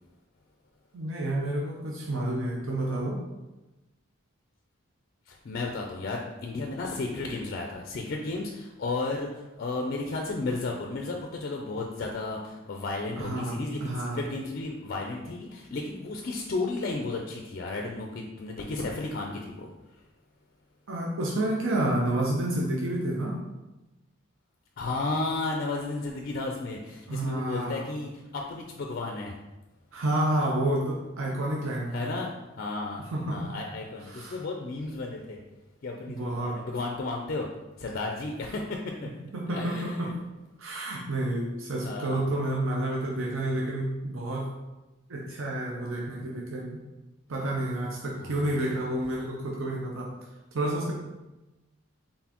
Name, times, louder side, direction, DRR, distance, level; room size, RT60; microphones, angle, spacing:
voice 1, 0.9-3.2 13.2-14.2 20.9-23.4 27.1-27.8 29.9-32.1 33.1-33.5 34.1-34.4 36.1-36.6 39.3-40.1 40.6-44.5 45.1-46.8 47.3-50.1 50.5-50.9, right 1 dB, 70° right, -2 dB, 0.6 m, -29 dB
voice 2, 5.5-9.3 9.6-19.7 24.8-29.3 31.9-32.3 32.6-33.0 33.3-35.4 35.8-37.5 37.8-39.1 39.5-40.1 41.8-42.2 48.2-48.7, left 3 dB, 45° left, 1 dB, 0.4 m, -33 dB
4.1 x 3.7 x 2.9 m, 1.1 s
head